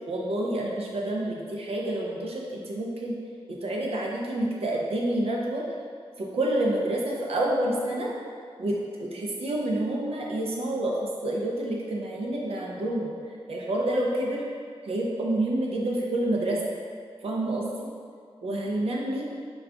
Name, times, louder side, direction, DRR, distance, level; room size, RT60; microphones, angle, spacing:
voice 1, 0.1-3.2 3.5-5.6 6.2-8.1 8.6-10.9 11.2-13.1 13.5-14.4 14.8-16.6 17.2-17.9 18.4-19.2, right 1 dB, 70° right, -3 dB, 0.5 m, -28 dB
3.4 x 2.3 x 3.6 m, 2.1 s
wide cardioid pair, 160°, 10 cm